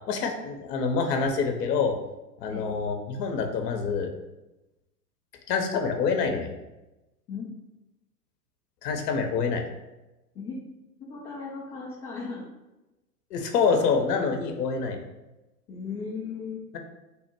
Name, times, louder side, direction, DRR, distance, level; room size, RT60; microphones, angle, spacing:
voice 1, 0.1-2.0 2.4-4.1 5.5-6.5 8.8-9.6 13.3-15.0, left 5 dB, 70° left, 4 dB, 0.7 m, -26 dB
voice 2, 11.0-12.5 15.7-16.6, left 5 dB, 15° left, -7 dB, 0.3 m, -36 dB
3.5 x 2.1 x 4.3 m, 1.0 s
hypercardioid pair, 100°, 50 cm